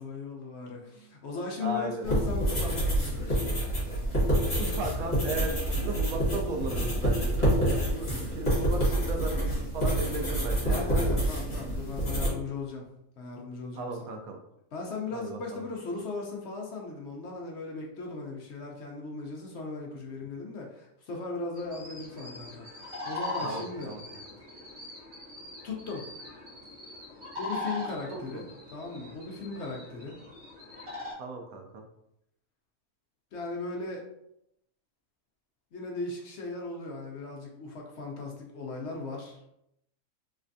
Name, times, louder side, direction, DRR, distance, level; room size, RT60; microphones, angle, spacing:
voice 1, 0.0-3.4 10.7-12.8 13.2-14.2 14.7-23.9 25.6-26.1 27.4-28.5 28.7-30.2 33.3-34.0 35.7-39.5, left 3 dB, 60° left, 0 dB, 0.8 m, -37 dB
voice 2, 1.6-2.1 4.5-11.1 13.7-14.4 15.1-15.6 23.4-24.0 28.1-28.4 31.2-31.8, right 2 dB, 80° right, 3 dB, 1.1 m, -36 dB
sound 1, 2.0-12.3, right 1 dB, 30° left, 1.5 m, -27 dB
sound 2, 21.5-31.1, left 2 dB, 50° right, 1.6 m, -41 dB
3.3 x 3.2 x 2.6 m, 0.80 s
omnidirectional pair, 1.5 m